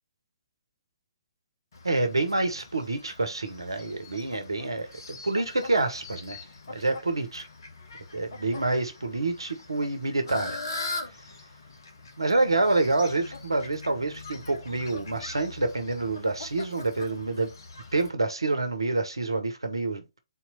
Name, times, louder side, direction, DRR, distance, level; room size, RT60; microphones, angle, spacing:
Fowl, 1.7-18.1, left 3 dB, 55° left, 1.2 m, -42 dB
voice 1, 1.8-7.4 8.1-10.6 12.2-17.5 17.9-20.2, right 2 dB, 75° right, 0.9 m, -27 dB
4.0 x 2.9 x 4.1 m
figure-of-eight pair, 125°, 2 cm